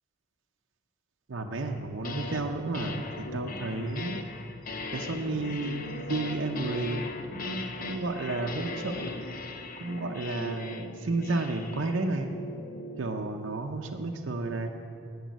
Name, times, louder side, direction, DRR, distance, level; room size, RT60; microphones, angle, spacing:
voice 1, 1.3-4.2 4.9-7.0 7.3-9.2 9.8-12.3 13.0-14.7, right 2 dB, 75° right, 3 dB, 0.7 m, -32 dB
sound 1, 1.8-2.4 2.7-13.1, left 2 dB, 45° left, 0.8 m, -39 dB
10.5 x 7.0 x 9.3 m, 2.5 s
head